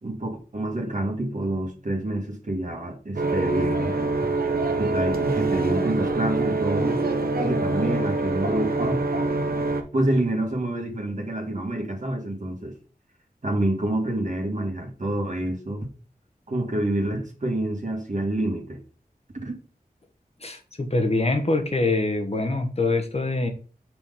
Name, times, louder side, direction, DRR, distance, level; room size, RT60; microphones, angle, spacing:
voice 1, 0.0-4.0 4.8-7.0 7.4-9.0 9.9-12.7 13.4-15.9 16.5-18.8 19.4-19.6, right 1 dB, 55° right, 1.8 m, -27 dB
sound 1, 3.2-9.8, right 3 dB, 80° right, 1.0 m, -25 dB
voice 2, 20.4-23.5, left 2 dB, 45° left, 1.2 m, -24 dB
5.9 x 3.9 x 5.2 m
wide cardioid pair, 70°, 15 cm